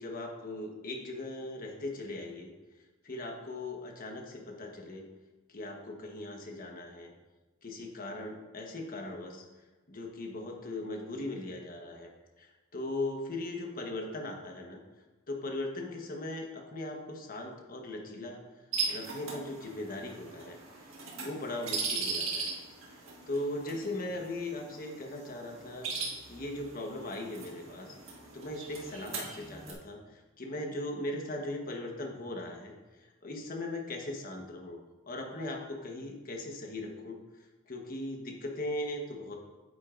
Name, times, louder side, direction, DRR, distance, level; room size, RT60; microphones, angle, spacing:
voice 1, 0.0-2.5 3.0-5.1 5.5-7.1 7.6-9.4 9.9-12.1 12.4-14.8 15.3-18.4 18.9-20.9 21.2-22.6 22.9-27.9 28.3-34.8 35.1-37.2 37.7-39.4, left 1 dB, 45° left, 2 dB, 1.2 m, -39 dB
sound 1, 18.7-29.7, right 4 dB, 80° right, 1.7 m, -39 dB
9.3 x 8.3 x 2.5 m, 1.2 s
head